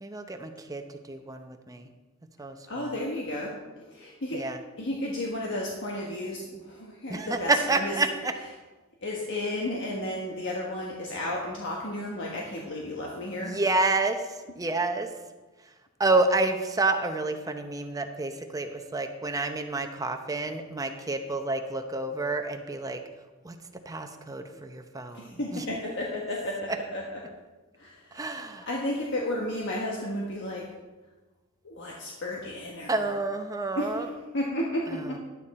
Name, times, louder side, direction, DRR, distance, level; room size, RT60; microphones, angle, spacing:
voice 1, 0.0-1.9 2.4-2.9 4.3-4.6 7.1-8.3 13.4-15.1 16.0-23.0 23.4-23.6 23.9-25.6 28.1-28.7 32.9-34.1 34.9-35.2, right 2 dB, 15° right, 6 dB, 0.7 m, -29 dB
voice 2, 2.7-4.5 4.8-8.0 9.0-13.6 25.1-27.2 27.8-30.7 31.6-33.1 33.7-35.2, left 1 dB, 60° left, -2 dB, 1.4 m, -33 dB
11.5 x 8.9 x 4.2 m, 1.2 s
head